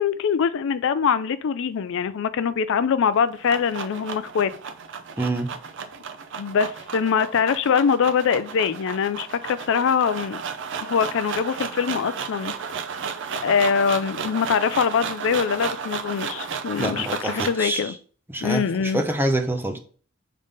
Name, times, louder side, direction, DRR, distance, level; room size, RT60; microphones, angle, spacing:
voice 1, 0.0-4.5 6.4-10.4 10.8-12.5 13.4-17.9 18.4-19.0, left 6 dB, 65° left, 0.4 m, -23 dB
sound 1, 3.1-17.7, right 6 dB, 60° right, 0.7 m, -33 dB
voice 2, 5.2-5.5 16.8-17.9 18.3-19.8, right 1 dB, 10° right, 0.8 m, -26 dB
5.3 x 3.9 x 5.3 m
head